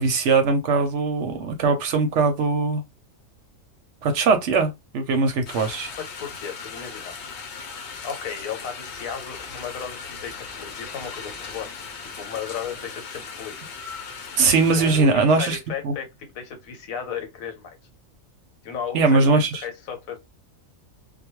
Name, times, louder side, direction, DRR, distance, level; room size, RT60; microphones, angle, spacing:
voice 1, 0.0-2.8 4.0-5.9 14.4-15.6 15.8-15.9 18.9-19.6, right 4 dB, 65° right, 0.8 m, -20 dB
sound 1, 5.5-15.0, left 5 dB, 60° left, 0.9 m, -38 dB
voice 2, 6.0-7.1 8.0-11.7 12.2-13.6 14.7-17.8 18.6-20.2, left 7 dB, 75° left, 1.2 m, -34 dB
2.3 x 2.2 x 3.0 m
omnidirectional pair, 1.5 m